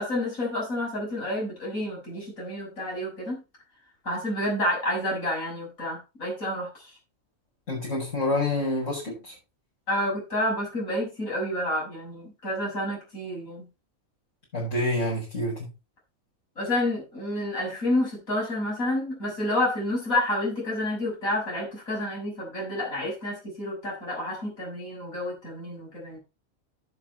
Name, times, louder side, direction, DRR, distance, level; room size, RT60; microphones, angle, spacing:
voice 1, 0.0-3.4 4.0-6.9 9.9-13.7 16.6-26.2, left 1 dB, 85° left, -3 dB, 7.2 m, -29 dB
voice 2, 7.7-9.3 14.5-15.7, left 1 dB, 65° left, -7 dB, 6.3 m, -27 dB
10.5 x 8.1 x 4.4 m, 0.28 s
omnidirectional pair, 1.4 m